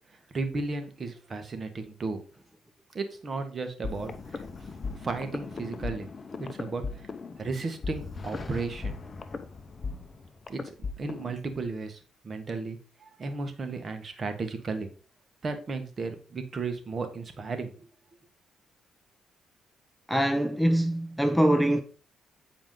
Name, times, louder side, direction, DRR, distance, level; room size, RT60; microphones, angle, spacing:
voice 1, 0.3-2.2 2.9-4.4 5.0-6.1 6.4-6.8 7.4-9.0 10.5-14.9 15.4-17.9, right 3 dB, 40° right, 1.5 m, -34 dB
sound 1, 3.8-11.4, left 4 dB, 35° left, 0.8 m, -38 dB
voice 2, 20.1-21.8, right 1 dB, ahead, 0.7 m, -23 dB
9.0 x 4.8 x 3.8 m
cardioid pair, 90°, 0 cm